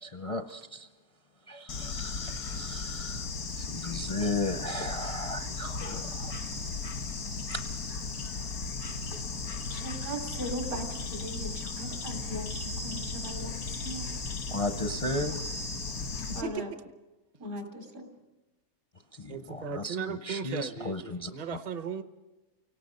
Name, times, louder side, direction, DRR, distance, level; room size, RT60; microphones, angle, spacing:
voice 1, 0.0-0.9 1.5-3.3 3.5-6.3 14.5-15.4 19.1-21.3, left 2 dB, 35° left, 7 dB, 0.5 m, -35 dB
Bird / Insect, 1.7-16.4, left 4 dB, 90° left, 1.8 m, -36 dB
voice 2, 9.7-14.1 16.3-16.7 17.4-18.1, equal, 75° right, 3 dB, 3.8 m, -39 dB
voice 3, 16.3-16.6 19.3-22.0, right 6 dB, 35° right, 10 dB, 0.7 m, -36 dB
29.0 x 18.5 x 5.4 m, 1.1 s
omnidirectional pair, 1.6 m